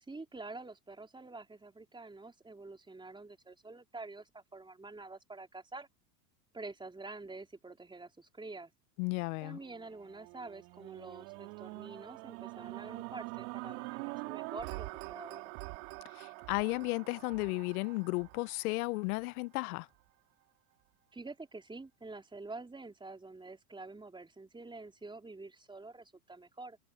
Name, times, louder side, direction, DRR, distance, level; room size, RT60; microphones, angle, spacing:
voice 1, 0.1-5.9 6.5-8.7 9.4-15.4 21.1-26.8, right 3 dB, 10° right, 3.7 m, -47 dB
voice 2, 9.0-9.6 16.1-19.9, left 25 dB, 60° left, 1.1 m, -34 dB
sound 1, 9.5-19.8 20.4-20.5, right 32 dB, 60° right, 5.0 m, -45 dB
hypercardioid pair, 105°, 49 cm